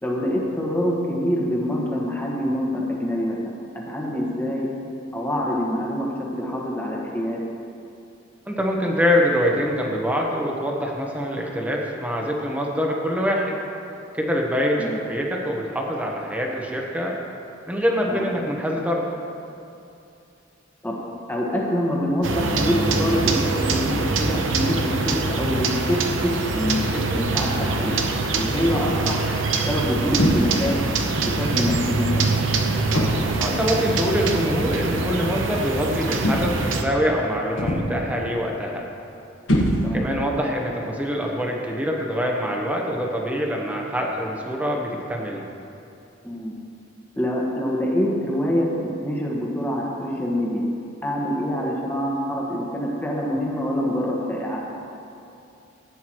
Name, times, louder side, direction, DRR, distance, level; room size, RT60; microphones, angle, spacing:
voice 1, 0.0-4.8 5.1-7.4 14.8-15.0 18.1-18.3 20.8-21.0 21.3-28.0 28.3-29.3 29.7-30.8 31.2-32.3 39.8-40.1 46.2-46.5 47.2-50.7 51.0-54.6, equal, 10° left, -3 dB, 1.5 m, -25 dB
voice 2, 8.5-13.6 14.1-17.2 17.7-19.0 33.4-38.8 39.9-45.4, equal, 10° right, -1 dB, 1.1 m, -24 dB
sound 1, 22.2-36.8, right 3 dB, 80° right, 0.9 m, -24 dB
sound 2, 30.2-30.7 31.5-31.9 32.9-33.4 34.5-34.7 36.2-36.7 37.6-38.1 39.5-40.2, equal, 80° left, 1.4 m, -23 dB
15.5 x 9.4 x 3.1 m, 2.6 s
head